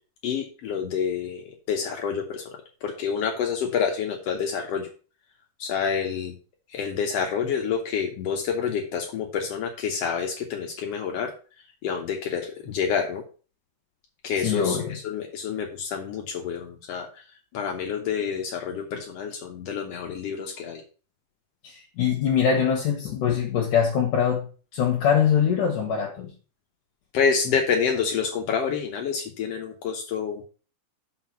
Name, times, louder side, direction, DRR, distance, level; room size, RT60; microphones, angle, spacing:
voice 1, 0.2-1.4 1.7-2.4 2.8-4.9 5.6-6.3 6.7-11.3 11.8-13.2 14.2-17.1 17.5-20.8 27.1-30.5, left 6 dB, 85° left, 1.3 m, -28 dB
voice 2, 14.4-15.0 21.6-24.5 24.7-26.3, left 7 dB, 70° left, 2.5 m, -23 dB
6.0 x 5.3 x 6.0 m
omnidirectional pair, 4.2 m